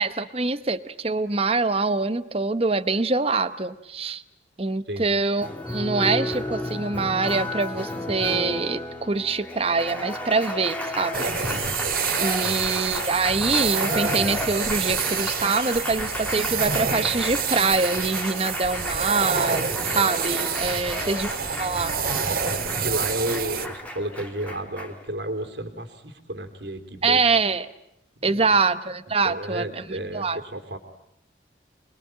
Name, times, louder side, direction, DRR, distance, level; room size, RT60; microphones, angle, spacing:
voice 1, 0.0-4.2 4.6-11.3 12.2-21.3 21.6-21.9 27.0-27.7 28.2-30.4, right 4 dB, 35° right, 11 dB, 0.9 m, -24 dB
Applause, 5.4-25.1, left 1 dB, 10° left, 2.5 m, -33 dB
sound 1, 11.1-23.7, right 6 dB, 55° right, 2.0 m, -28 dB
voice 2, 20.7-21.1 22.6-27.4 28.2-28.6 29.2-30.8, right 1 dB, 70° right, 6 dB, 3.1 m, -32 dB
28.5 x 21.5 x 8.8 m, 0.80 s
head